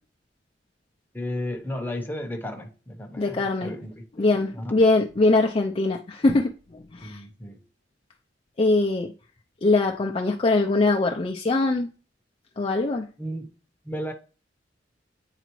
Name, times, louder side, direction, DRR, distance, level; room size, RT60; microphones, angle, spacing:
voice 1, 1.1-4.2 4.5-4.8 7.0-7.6 13.2-13.5 13.8-14.1, left 1 dB, 10° left, 0.8 m, -34 dB
voice 2, 3.2-3.7 4.2-7.2 8.6-9.1 9.6-11.9 12.6-13.1, left 2 dB, 30° left, 0.4 m, -22 dB
9.1 x 3.9 x 3.0 m
head